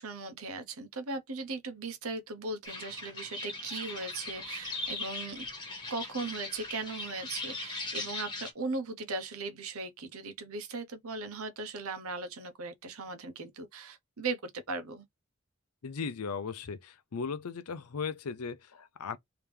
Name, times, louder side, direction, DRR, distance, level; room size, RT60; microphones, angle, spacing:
voice 1, 0.0-5.5 5.9-15.1, right 3 dB, 80° right, 0.9 m, -38 dB
sound 1, 2.6-8.5, left 2 dB, 20° left, 1.3 m, -39 dB
voice 2, 15.8-19.2, left 5 dB, 90° left, 0.6 m, -37 dB
3.4 x 2.9 x 3.3 m
head